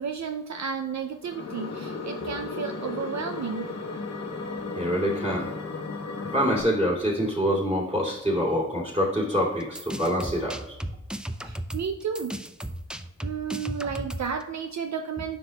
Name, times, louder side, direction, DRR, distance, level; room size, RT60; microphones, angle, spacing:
voice 1, 0.0-3.7 4.7-4.8 11.4-12.3 13.2-15.4, right 6 dB, 65° right, 5 dB, 0.5 m, -32 dB
sound 1, 1.2-6.6, left 4 dB, 60° left, 1.0 m, -35 dB
voice 2, 4.7-5.5 6.3-10.8, equal, 20° right, -2 dB, 2.6 m, -25 dB
sound 2, 9.6-14.4, right 1 dB, 5° right, 0.4 m, -35 dB
9.9 x 5.9 x 2.3 m, 0.95 s
wide cardioid pair, 80°, 31 cm